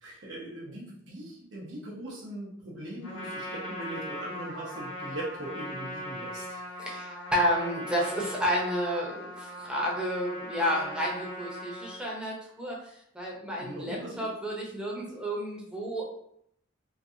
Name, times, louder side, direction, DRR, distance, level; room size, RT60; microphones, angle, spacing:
voice 1, 0.0-6.6 13.5-14.3, right 1 dB, 85° right, -4 dB, 1.1 m, -40 dB
Trumpet, 3.0-12.0, equal, 80° left, 1.0 m, -39 dB
voice 2, 6.8-12.8 13.1-16.0, equal, 5° right, -3 dB, 0.7 m, -31 dB
3.1 x 2.7 x 2.6 m, 0.72 s
head